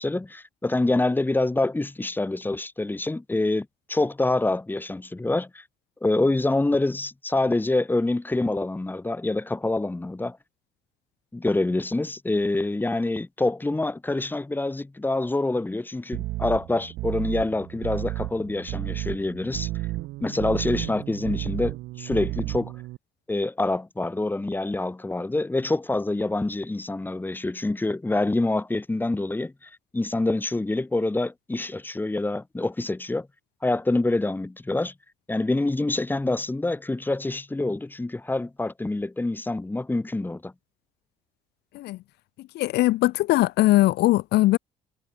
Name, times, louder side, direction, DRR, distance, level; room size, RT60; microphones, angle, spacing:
voice 1, 0.0-5.6 6.0-10.4 11.3-19.7 20.2-22.7 23.3-33.3 33.6-34.9 35.3-40.5, left 2 dB, 10° left, 2.6 m, -26 dB
sound 1, 16.1-23.0, right 18 dB, 85° right, 3.2 m, -32 dB
voice 2, 42.5-44.6, left 17 dB, 80° left, 1.2 m, -20 dB
cardioid pair, 110°, 17 cm